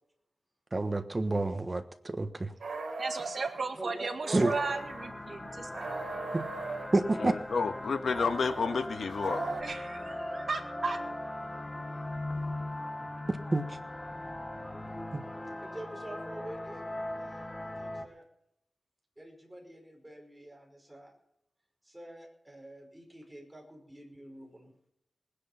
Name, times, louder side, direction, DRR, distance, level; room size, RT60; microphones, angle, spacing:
voice 1, 0.7-2.5 4.3-4.5 6.3-6.4 6.9-7.3 13.3-13.8 15.1-15.2, right 2 dB, 25° right, 8 dB, 1.3 m, -29 dB
sound 1, 2.6-3.6 4.2-5.1 5.7-7.0 8.1-9.6, right 4 dB, 70° right, 2.8 m, -39 dB
voice 2, 3.0-5.9 9.6-11.0, right 3 dB, 55° right, 5 dB, 1.9 m, -36 dB
voice 3, 3.7-4.8 15.6-16.8 17.2-18.2 19.2-21.1 21.8-24.7, right 1 dB, 10° right, 1 dB, 5.2 m, -46 dB
sound 2, 4.3-18.1, left 1 dB, 20° left, 1.3 m, -39 dB
voice 4, 7.2-9.5, left 4 dB, 75° left, 7 dB, 1.4 m, -30 dB
20.0 x 10.0 x 5.7 m, 0.77 s
wide cardioid pair, 140°, 0 cm